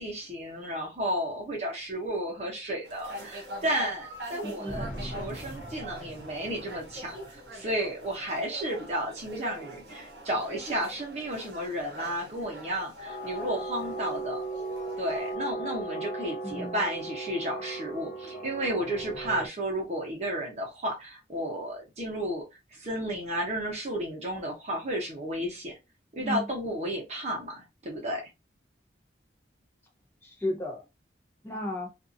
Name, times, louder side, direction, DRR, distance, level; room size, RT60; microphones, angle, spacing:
voice 1, 0.0-14.4 15.0-22.4 22.7-25.7 26.1-28.2, right 1 dB, 40° right, 0.9 m, -33 dB
sound 1, 2.8-15.4, equal, 80° right, 1.1 m, -43 dB
voice 2, 4.4-4.9 16.4-16.8 26.1-26.5 30.2-30.8 31.4-31.9, left 1 dB, 15° left, 0.9 m, -34 dB
sound 2, 4.7-7.6 13.1-19.5, right 2 dB, 40° left, 0.8 m, -38 dB
2.6 x 2.4 x 2.6 m
head